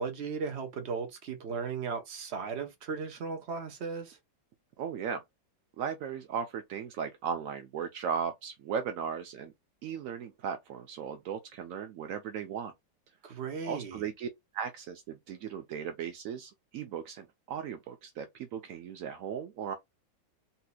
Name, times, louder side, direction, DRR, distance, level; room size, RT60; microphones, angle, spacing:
voice 1, 0.0-4.2 13.2-14.1, right 5 dB, 50° right, 0.9 m, -36 dB
voice 2, 4.8-5.2 5.8-9.5 9.8-12.7 13.6-14.3 14.5-19.7, right 7 dB, 75° right, 0.7 m, -37 dB
4.1 x 2.7 x 2.2 m
omnidirectional pair, 2.0 m